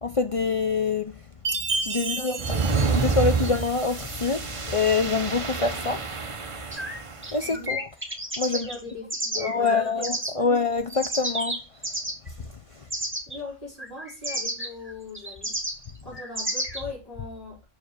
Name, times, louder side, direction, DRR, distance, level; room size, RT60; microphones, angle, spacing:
voice 1, 0.0-1.2 1.8-2.4 2.9-6.0 7.3-7.9 8.4-8.7 9.4-11.6 12.7-12.8, left 4 dB, 45° left, 0.4 m, -25 dB
Chime, 1.4-3.9, right 4 dB, 55° right, 1.1 m, -31 dB
voice 2, 2.0-2.8 7.4-7.8 8.5-10.0 10.3-10.5 12.7-15.5 16.0-17.6, left 3 dB, 25° left, 5.0 m, -40 dB
sound 1, 2.4-7.3, right 4 dB, 30° right, 0.7 m, -28 dB
sound 2, 6.7-10.3 10.7-12.3 12.9-13.4 13.8-16.8, right 1 dB, 10° right, 1.3 m, -31 dB
6.4 x 4.8 x 6.4 m
omnidirectional pair, 1.3 m